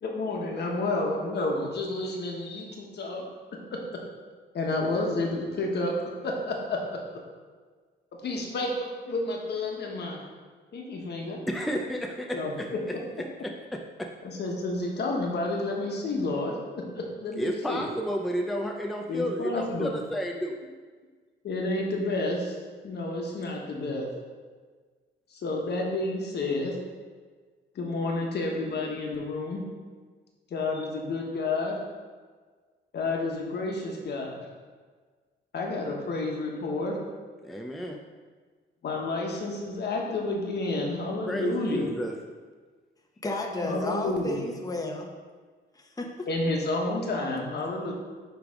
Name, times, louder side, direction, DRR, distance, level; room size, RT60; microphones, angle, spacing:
voice 1, 0.0-3.2 3.5-3.6 4.5-5.9 6.2-7.0 8.2-10.2 10.7-11.4 12.3-13.0 14.2-17.8 19.1-19.9 21.4-22.6 22.8-24.1 25.3-26.8 27.7-29.6 30.5-31.7 32.9-34.5 35.5-37.0 38.8-41.9 43.6-44.4 46.3-47.9, left 2 dB, 60° left, 0 dB, 1.3 m, -30 dB
voice 2, 11.5-12.7 13.4-14.1 17.4-20.6 37.4-38.0 41.3-42.1, equal, ahead, 1 dB, 0.5 m, -31 dB
voice 3, 43.2-45.1 45.7-46.3, left 2 dB, 20° left, 1 dB, 1.0 m, -33 dB
9.5 x 3.4 x 3.7 m, 1.5 s
cardioid pair, 90°, 20 cm